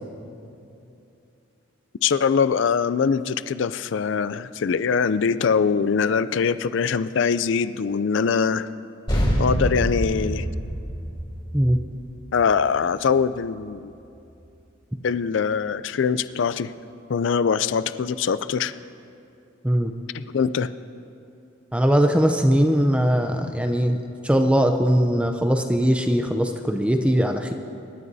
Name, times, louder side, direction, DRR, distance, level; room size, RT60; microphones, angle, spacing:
voice 1, 2.0-8.7 9.4-10.5 12.3-13.9 15.0-16.7 17.1-18.7 20.1-20.7, left 6 dB, 60° left, 14 dB, 0.4 m, -23 dB
sound 1, 9.1-13.9, equal, 25° left, 3.9 m, -27 dB
voice 2, 21.7-24.0 24.2-27.5, equal, 5° right, 5 dB, 0.5 m, -20 dB
25.5 x 12.5 x 2.7 m, 2.7 s
head